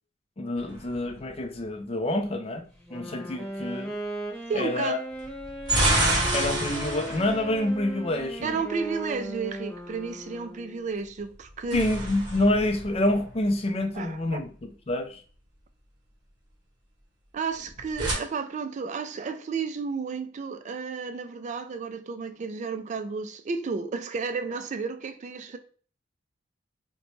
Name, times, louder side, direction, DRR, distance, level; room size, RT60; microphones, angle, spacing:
voice 1, 0.4-3.9 4.5-5.0 6.3-8.6 11.7-15.2, left 1 dB, 30° left, 0.5 m, -27 dB
sound 1, 0.6-1.6 5.2-8.5 11.3-13.8 17.6-18.1, right 1 dB, 25° right, 0.9 m, -29 dB
Wind instrument woodwind instrument, 2.8-10.9, right 1 dB, 5° left, 0.9 m, -37 dB
voice 2, 4.5-5.0 8.4-11.9 13.9-14.4 17.3-25.6, right 5 dB, 40° right, 0.3 m, -32 dB
3.9 x 2.2 x 3.0 m
head